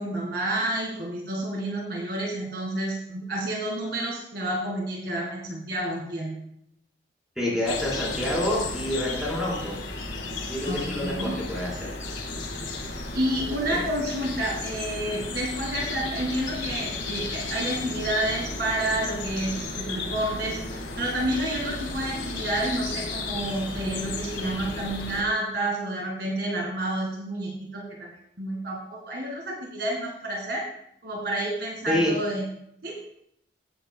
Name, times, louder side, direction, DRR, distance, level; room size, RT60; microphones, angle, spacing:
voice 1, 0.0-6.4 10.7-11.4 13.2-28.1 28.4-30.6 31.0-32.5 32.8-33.0, right 1 dB, 55° right, -2 dB, 1.8 m, -29 dB
voice 2, 7.4-9.7 10.5-11.9 13.7-13.8 31.9-32.1, left 1 dB, 5° right, -7 dB, 3.9 m, -27 dB
sound 1, 7.6-25.2, left 3 dB, 75° left, 1.5 m, -34 dB
15.0 x 8.0 x 2.2 m, 0.74 s
head